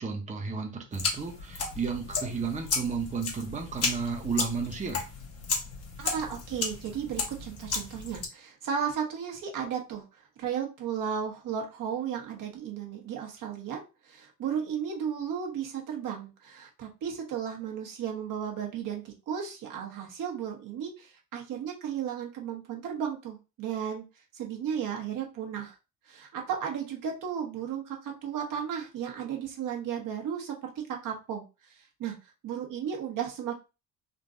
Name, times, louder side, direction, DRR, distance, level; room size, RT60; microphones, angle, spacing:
voice 1, 0.0-5.0, right 5 dB, 20° right, 0.8 m, -33 dB
sound 1, 0.9-8.3, left 4 dB, 50° left, 1.0 m, -34 dB
voice 2, 6.0-24.0 24.3-25.8 26.1-30.7 31.0-31.4 31.7-32.2 32.4-33.5, right 8 dB, 75° right, 1.2 m, -34 dB
3.7 x 2.6 x 2.5 m
cardioid pair, 90°, 32 cm